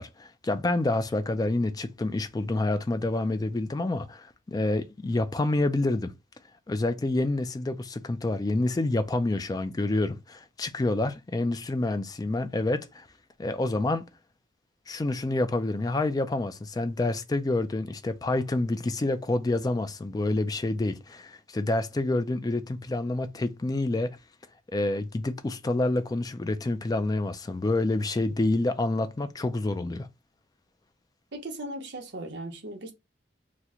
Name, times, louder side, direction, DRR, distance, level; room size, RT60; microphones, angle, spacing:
voice 1, 0.0-6.1 6.7-13.1 13.4-14.1 14.9-24.1 24.7-30.1, left 2 dB, 20° left, 0.3 m, -28 dB
voice 2, 31.3-32.9, right 1 dB, 60° right, 0.8 m, -37 dB
2.9 x 2.1 x 3.6 m
head